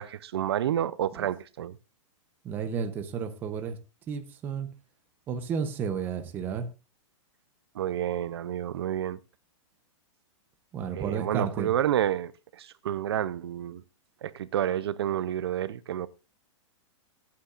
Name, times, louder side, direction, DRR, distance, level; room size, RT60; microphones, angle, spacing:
voice 1, 0.0-1.7 7.8-9.2 11.0-12.3 12.6-13.8 14.2-16.1, right 11 dB, 55° right, 0.6 m, -29 dB
voice 2, 2.4-3.8 4.1-4.7 5.3-6.7 10.7-11.7, right 6 dB, 10° right, 0.8 m, -32 dB
22.5 x 8.7 x 2.5 m
supercardioid pair, 180°, 16 cm